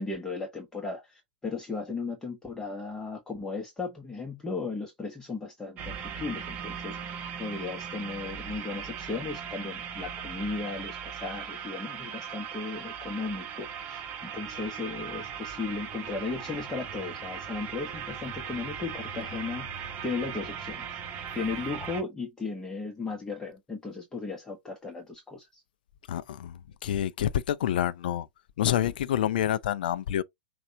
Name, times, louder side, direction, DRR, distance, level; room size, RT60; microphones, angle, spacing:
voice 1, 0.0-19.7 20.0-21.0 21.3-25.6, left 4 dB, 10° left, 1.1 m, -36 dB
sound 1, 5.8-22.0, right 7 dB, 30° right, 1.1 m, -38 dB
voice 2, 26.1-28.3 28.6-30.2, left 11 dB, 55° left, 0.5 m, -28 dB
6.4 x 2.4 x 2.8 m
figure-of-eight pair, 100°, 6 cm